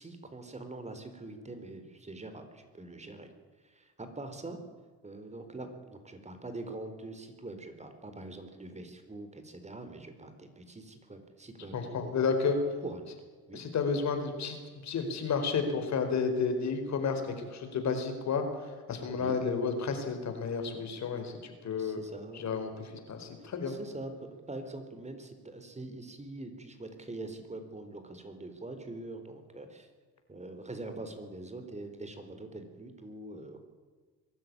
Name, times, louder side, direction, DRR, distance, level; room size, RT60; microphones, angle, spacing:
voice 1, 0.0-3.3 3.6-4.6 5.0-12.3 12.8-13.1 13.5-13.6 19.1-19.4 21.7-22.5 23.7-29.9 30.3-33.7, right 2 dB, 20° right, 8 dB, 4.1 m, -44 dB
voice 2, 11.7-12.6 13.5-22.0 22.3-23.7, left 5 dB, 65° left, 6 dB, 4.6 m, -32 dB
22.5 x 13.0 x 9.7 m, 1.5 s
cardioid pair, 90°, 30 cm